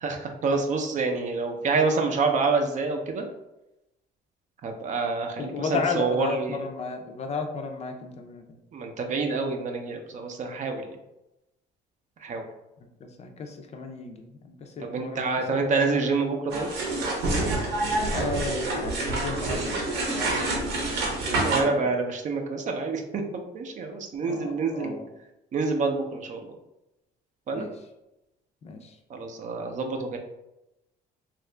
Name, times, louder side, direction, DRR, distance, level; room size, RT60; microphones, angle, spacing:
voice 1, 0.0-3.3 4.6-6.6 8.7-10.9 12.2-12.4 14.8-16.7 21.3-25.0 25.5-26.5 27.5-27.7 29.1-30.2, right 4 dB, 45° right, 4 dB, 0.5 m, -27 dB
voice 2, 5.4-8.6 13.0-16.2 18.0-21.9 24.2-25.1 27.5-27.7 28.6-28.9, left 4 dB, 40° left, 4 dB, 0.4 m, -34 dB
sound 1, 16.5-21.6, right 2 dB, 85° right, 0.9 m, -27 dB
2.8 x 2.4 x 3.2 m, 0.92 s
cardioid pair, 110°, 17 cm